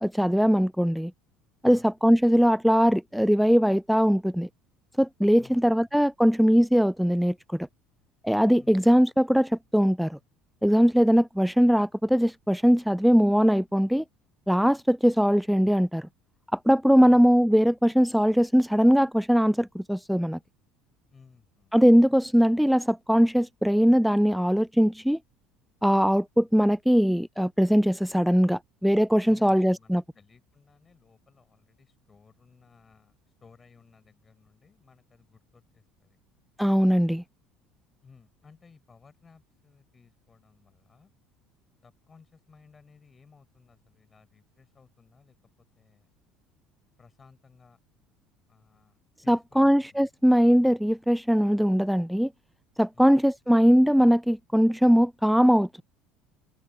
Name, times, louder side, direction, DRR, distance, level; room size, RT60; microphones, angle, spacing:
voice 1, 0.0-1.1 1.6-4.5 5.0-7.7 8.2-10.2 10.6-14.0 14.5-16.1 16.5-20.4 21.7-25.2 25.8-30.0 36.6-37.2 49.3-52.3 52.8-55.8, equal, ahead, 0.3 m, -21 dB
voice 2, 8.5-8.9 17.0-17.2 21.1-21.8 29.2-36.2 38.0-41.1 41.8-46.1 47.0-47.8 48.5-50.1 52.9-53.1, left 5 dB, 30° left, 6.6 m, -58 dB
open air
hypercardioid pair, 70°, 0 cm